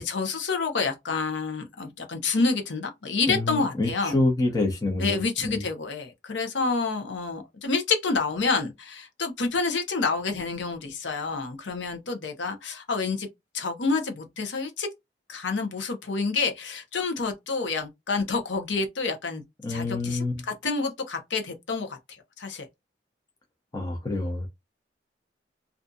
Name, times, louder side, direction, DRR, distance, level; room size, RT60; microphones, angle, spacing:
voice 1, 0.0-4.2 5.0-13.3 13.5-14.9 15.3-19.4 19.7-22.7, left 4 dB, 85° left, 0.7 m, -28 dB
voice 2, 3.3-5.6 19.6-20.5 23.7-24.5, left 2 dB, 20° left, 0.6 m, -27 dB
2.6 x 2.5 x 2.2 m
head